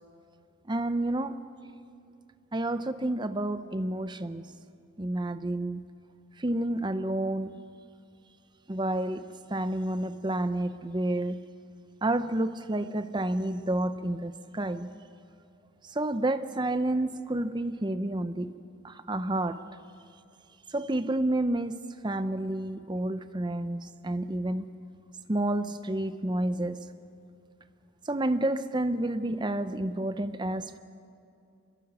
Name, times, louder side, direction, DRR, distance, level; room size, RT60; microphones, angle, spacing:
voice 1, 0.7-1.4 2.5-4.5 5.0-5.9 6.4-7.6 8.7-11.4 12.0-15.0 15.8-18.6 18.8-19.6 20.7-24.8 25.3-26.8 28.1-30.8, right 1 dB, 20° right, 0.7 m, -30 dB
25.0 x 22.0 x 6.2 m
head